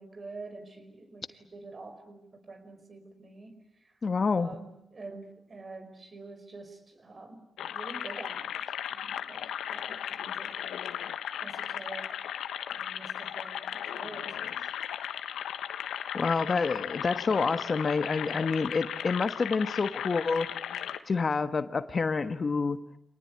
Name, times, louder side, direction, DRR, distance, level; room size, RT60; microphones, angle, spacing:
voice 1, 0.0-4.0 4.3-10.7 11.4-12.3 12.7-14.7, right 3 dB, 50° right, 8 dB, 5.2 m, -47 dB
voice 2, 4.0-4.5 16.1-20.5 21.1-22.8, left 4 dB, 50° left, 11 dB, 1.3 m, -28 dB
sound 1, 7.6-21.0, left 10 dB, 90° left, 1.2 m, -36 dB
25.5 x 19.0 x 9.7 m, 0.82 s
supercardioid pair, 50°, 0 cm